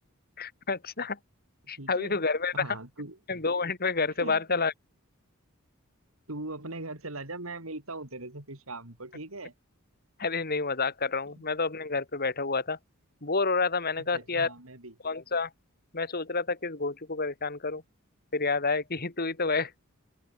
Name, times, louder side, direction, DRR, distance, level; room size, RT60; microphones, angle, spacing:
voice 1, 0.4-1.2 1.7-2.5 3.3-4.7 10.2-12.8 13.2-14.5 15.0-15.5 15.9-17.8 18.3-19.7, left 4 dB, 45° left, 3.0 m, -29 dB
voice 2, 1.6-2.2 2.5-3.2 4.2-4.4 6.3-9.5 11.3-11.4 14.0-14.9, right 2 dB, 75° right, 4.4 m, -40 dB
head